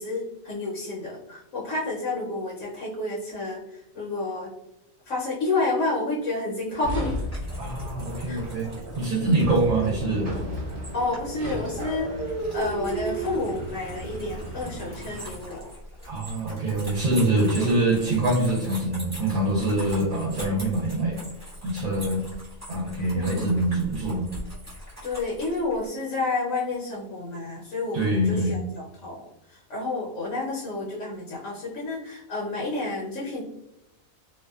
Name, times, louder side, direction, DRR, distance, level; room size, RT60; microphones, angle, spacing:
voice 1, 0.0-4.5 5.1-7.2 8.3-8.4 10.9-15.7 17.5-17.7 23.1-23.5 25.0-33.4, left 2 dB, 70° left, -4 dB, 1.0 m, -30 dB
sound 1, 6.8-15.6, right 1 dB, 40° right, 1.1 m, -34 dB
sound 2, 7.2-25.9, equal, 15° right, 0.8 m, -42 dB
voice 2, 7.6-8.7 9.0-10.3 16.1-21.2 21.6-22.2 22.7-24.3 27.9-28.6, right 1 dB, 75° right, -3 dB, 1.0 m, -24 dB
2.6 x 2.1 x 2.2 m, 0.91 s
omnidirectional pair, 1.5 m